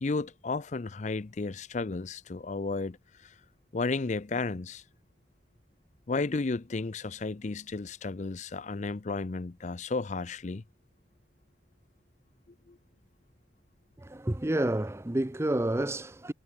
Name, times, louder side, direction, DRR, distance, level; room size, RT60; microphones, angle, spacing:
voice 1, 0.0-3.0 3.2-3.3 3.7-4.8 6.1-10.6 12.7-12.8, left 3 dB, 40° left, 0.5 m, -33 dB
voice 2, 14.0-16.3, right 1 dB, 15° right, 0.6 m, -29 dB
head